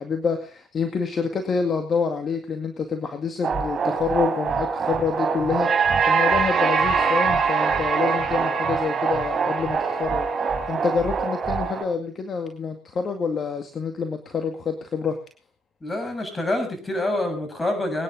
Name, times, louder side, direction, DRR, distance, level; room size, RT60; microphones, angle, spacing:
voice 1, 0.0-15.2, left 5 dB, 40° left, 6 dB, 2.1 m, -27 dB
sound 1, 3.4-11.8, right 5 dB, 40° right, 4.7 m, -23 dB
voice 2, 15.8-18.0, left 1 dB, 20° left, 6 dB, 7.0 m, -26 dB
23.0 x 10.0 x 3.9 m, 0.35 s
hypercardioid pair, 65°, 0 cm